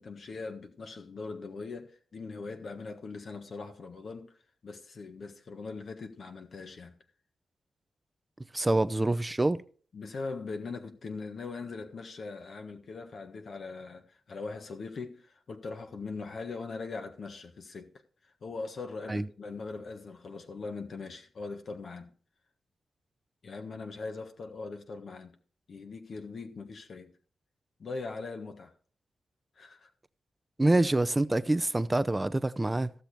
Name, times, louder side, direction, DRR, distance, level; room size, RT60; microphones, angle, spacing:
voice 1, 0.0-4.4 4.6-6.9 9.9-17.9 18.2-22.1 23.4-25.3 25.7-27.1 27.8-28.7 29.5-29.9, left 4 dB, 65° left, 1.5 m, -41 dB
voice 2, 8.5-9.6 19.1-19.2 30.6-32.9, right 2 dB, 20° right, 0.6 m, -26 dB
15.0 x 6.7 x 4.4 m
cardioid pair, 70°, 0 cm